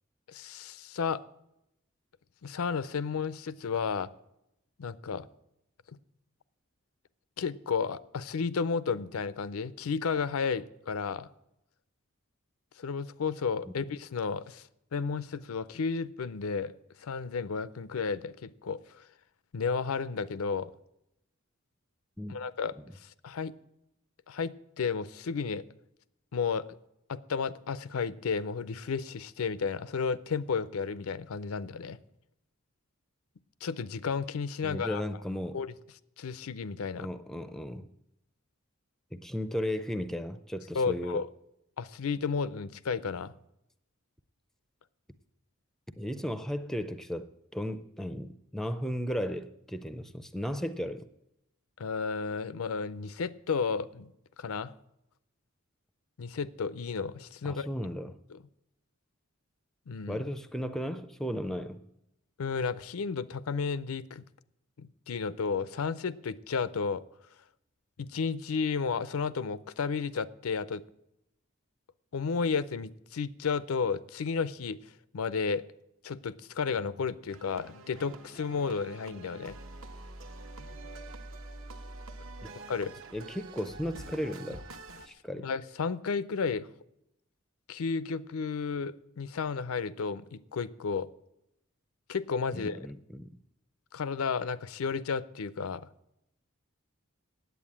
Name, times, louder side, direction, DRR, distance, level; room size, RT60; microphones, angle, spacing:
voice 1, 0.3-1.2 2.4-4.1 4.8-5.3 5.9-6.0 7.4-11.3 12.8-16.7 17.0-19.1 19.5-20.7 22.3-22.7 23.0-23.5 24.3-25.6 26.3-26.7 27.1-32.0 33.6-35.0 35.5-35.7 36.2-37.1 40.7-41.3 41.8-43.3 51.8-54.1 54.4-54.7 56.2-57.8 58.3-58.4 59.9-60.2 62.4-64.2 64.8-67.0 68.0-70.8 72.1-74.8 75.1-75.7 76.0-79.6 82.6-83.0 85.4-86.7 87.7-91.1 92.1-92.8 93.9-95.9, left 5 dB, 85° left, 0.5 m, -32 dB
voice 2, 34.6-35.6 37.0-37.9 39.1-41.2 46.0-51.1 57.4-58.2 60.1-61.8 82.4-82.5 83.1-84.6 85.1-85.5 92.5-93.4, equal, ahead, 0.4 m, -35 dB
sound 1, 77.3-85.1, right 2 dB, 70° right, 1.0 m, -46 dB
9.2 x 8.3 x 8.5 m
head